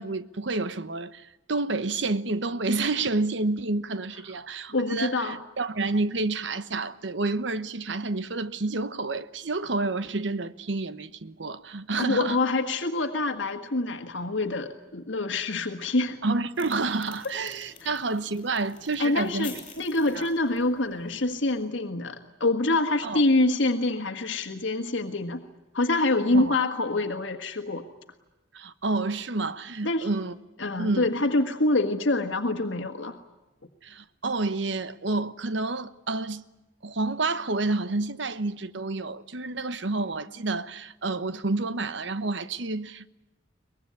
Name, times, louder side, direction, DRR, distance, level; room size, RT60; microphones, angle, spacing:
voice 1, 0.0-12.4 16.2-19.5 20.1-20.3 23.0-23.2 26.3-26.6 28.5-30.3 30.8-31.1 33.8-36.4 36.8-43.1, right 3 dB, 70° right, 1.0 m, -29 dB
voice 2, 4.7-5.4 12.0-16.2 17.8-17.9 19.0-25.4 25.7-27.8 29.8-30.1 30.6-33.2, left 2 dB, 75° left, 1.6 m, -26 dB
sound 1, 16.5-21.7, left 5 dB, 30° left, 7.9 m, -49 dB
23.5 x 20.0 x 9.8 m
head